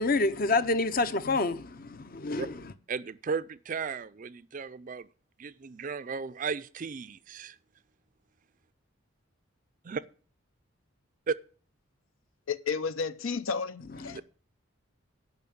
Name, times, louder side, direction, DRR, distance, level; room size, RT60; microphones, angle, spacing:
voice 1, 0.0-2.5, left 3 dB, 45° left, 0.7 m, -27 dB
voice 2, 2.9-5.1 5.4-7.6 9.8-10.0 11.3-11.4 14.1-14.2, right 5 dB, 40° right, 0.4 m, -35 dB
voice 3, 12.5-14.2, left 5 dB, 75° left, 0.7 m, -32 dB
10.5 x 5.8 x 8.5 m
head